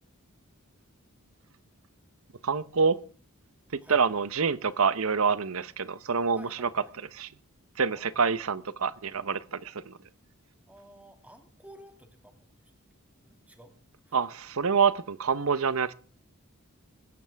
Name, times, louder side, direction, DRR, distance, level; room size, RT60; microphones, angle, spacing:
voice 1, 2.4-3.0 3.9-6.7 7.1-7.3 7.8-10.0 14.1-15.9, right 5 dB, 70° right, 0.8 m, -26 dB
voice 2, 6.3-7.1 7.9-8.6 10.7-12.7 13.2-13.8 14.1-14.2, equal, 5° right, 2.2 m, -53 dB
23.0 x 12.0 x 3.4 m
head